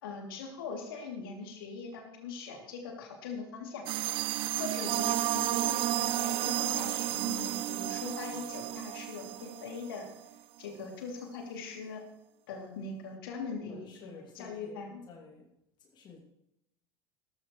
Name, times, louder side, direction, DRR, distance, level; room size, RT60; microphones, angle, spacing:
voice 1, 0.0-3.8 4.3-10.1 10.6-12.0 12.5-15.0, left 4 dB, 65° left, 1 dB, 2.9 m, -41 dB
sound 1, 3.9-10.1, right 15 dB, 45° right, 0.6 m, -32 dB
voice 2, 13.7-15.5 15.8-16.2, left 5 dB, 35° left, -1 dB, 2.5 m, -52 dB
17.5 x 14.0 x 3.2 m, 0.85 s
figure-of-eight pair, 75°, 13 cm